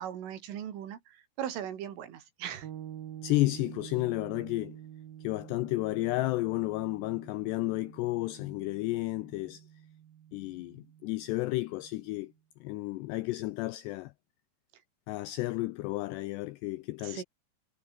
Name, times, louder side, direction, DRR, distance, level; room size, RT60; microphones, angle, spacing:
voice 1, 0.0-2.7 17.0-17.2, right 10 dB, 80° right, 5.3 m, -39 dB
sound 1, 2.6-12.3, right 10 dB, 55° right, 3.2 m, -48 dB
voice 2, 3.2-4.8 5.2-9.7 10.3-12.3 12.6-14.1 15.1-17.2, left 19 dB, 85° left, 2.4 m, -32 dB
omnidirectional pair, 5.7 m